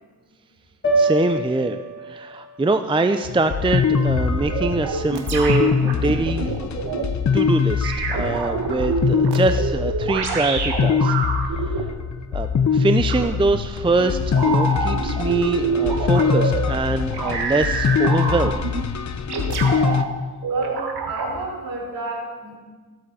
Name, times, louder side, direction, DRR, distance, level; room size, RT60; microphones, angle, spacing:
sound 1, 0.8-5.1, right 2 dB, 30° left, 4.1 m, -28 dB
voice 1, 1.0-1.8 2.1-6.5 7.3-11.1 12.3-18.5, right 3 dB, 15° right, 8 dB, 0.5 m, -23 dB
sound 2, 3.2-20.0, left 6 dB, 45° left, 0.8 m, -23 dB
sound 3, 4.1-7.0 7.8-11.8 13.1-13.3 14.3-16.6 17.1-18.8 19.3-20.1 20.4-21.3, right 5 dB, 85° right, 1.6 m, -26 dB
voice 2, 20.5-22.6, right 3 dB, 60° right, -1 dB, 4.1 m, -30 dB
19.0 x 7.8 x 4.2 m, 1.4 s
cardioid pair, 85°, 38 cm